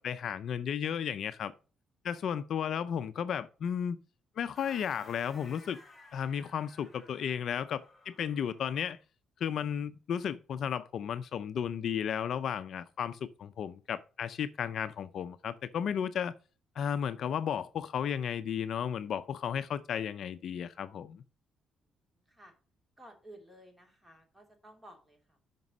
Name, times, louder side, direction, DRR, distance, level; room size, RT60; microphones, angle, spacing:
voice 1, 0.0-1.5 2.0-4.0 4.4-5.8 6.1-9.0 9.4-16.3 16.8-21.2, left 8 dB, 65° left, 0.5 m, -34 dB
sound 1, 4.5-9.0, left 2 dB, 25° left, 3.8 m, -56 dB
voice 2, 23.0-25.4, right 1 dB, 10° right, 2.8 m, -54 dB
5.9 x 5.3 x 6.1 m
cardioid pair, 90°, 0 cm